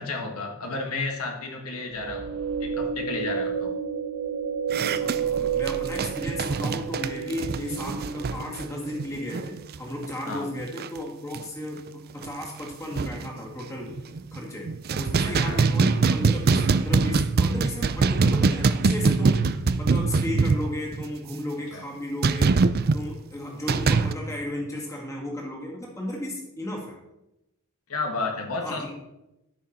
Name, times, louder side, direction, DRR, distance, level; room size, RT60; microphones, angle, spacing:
voice 1, 0.0-2.3 2.6-3.7 10.3-10.5 15.4-15.6 21.7-21.9 27.9-28.9, left 3 dB, 75° left, 2 dB, 1.7 m, -32 dB
sound 1, 1.9-9.3, right 6 dB, 85° right, 0.8 m, -31 dB
sound 2, 4.7-9.8 10.0-10.2 10.6-11.0 11.3-11.4 11.9-12.0 12.2-13.3 13.9-14.4 14.7-21.1 22.2-23.0 23.7-24.1, right 4 dB, 45° right, 0.4 m, -23 dB
voice 2, 5.0-14.0 14.3-22.6 22.9-27.0 28.6-28.9, left 1 dB, 15° left, -2 dB, 2.3 m, -34 dB
13.5 x 6.3 x 4.4 m, 0.92 s
head